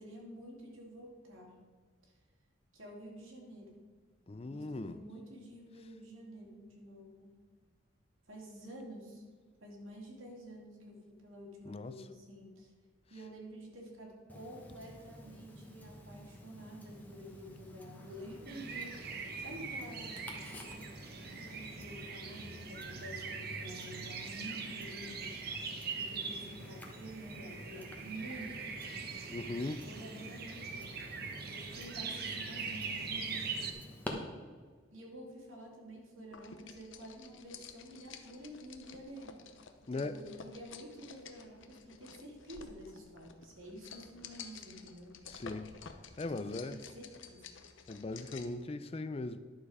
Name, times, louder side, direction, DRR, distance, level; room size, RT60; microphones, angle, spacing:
voice 1, 0.0-1.6 2.0-2.1 2.7-3.8 4.4-7.3 8.3-9.2 9.6-12.7 13.1-18.9 19.4-20.8 21.3-25.4 26.0-28.7 29.8-30.9 31.4-33.8 34.9-39.4 39.8-45.2 46.3-47.5, right 1 dB, 85° right, -1 dB, 2.6 m, -49 dB
voice 2, 4.3-5.0 11.7-12.0 29.3-29.8 39.9-40.1 45.3-45.7 46.2-46.8 47.9-49.4, left 2 dB, 30° left, 12 dB, 0.4 m, -39 dB
Tick-tock, 14.3-34.1, left 1 dB, 10° left, 1.1 m, -51 dB
sound 1, 18.5-33.7, right 5 dB, 50° right, 1.0 m, -42 dB
sound 2, 36.3-48.6, left 6 dB, 70° left, 0.8 m, -52 dB
11.0 x 7.1 x 4.8 m, 1.5 s
head